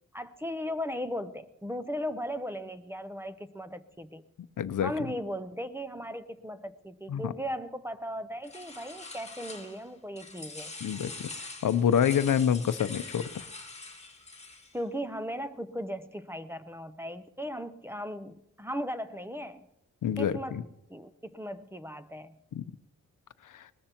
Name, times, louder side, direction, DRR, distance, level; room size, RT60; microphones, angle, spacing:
voice 1, 0.1-4.2 4.8-10.7 14.7-19.7 20.2-20.6 20.9-22.4, equal, 5° right, 10 dB, 0.6 m, -37 dB
voice 2, 4.6-4.9 7.1-7.3 10.8-13.5 20.0-20.6 22.5-22.7 23.5-23.7, left 8 dB, 70° left, 13 dB, 0.7 m, -27 dB
sound 1, 8.4-9.9 10.2-14.8, left 3 dB, 20° left, 1.9 m, -44 dB
20.5 x 19.5 x 2.9 m, 0.92 s
wide cardioid pair, 100°, 33 cm